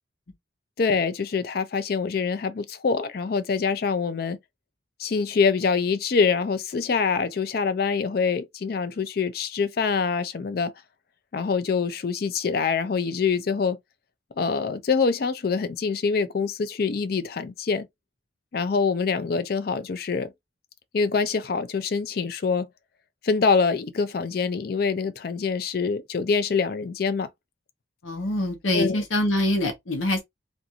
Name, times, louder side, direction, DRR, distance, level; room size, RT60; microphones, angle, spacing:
voice 1, 0.8-4.4 5.0-10.7 11.3-13.8 14.4-17.9 18.5-20.3 20.9-22.7 23.2-27.3 28.7-29.0, left 5 dB, 50° left, 0.4 m, -25 dB
voice 2, 28.0-30.2, left 1 dB, 85° left, 0.9 m, -24 dB
2.5 x 2.4 x 2.8 m
head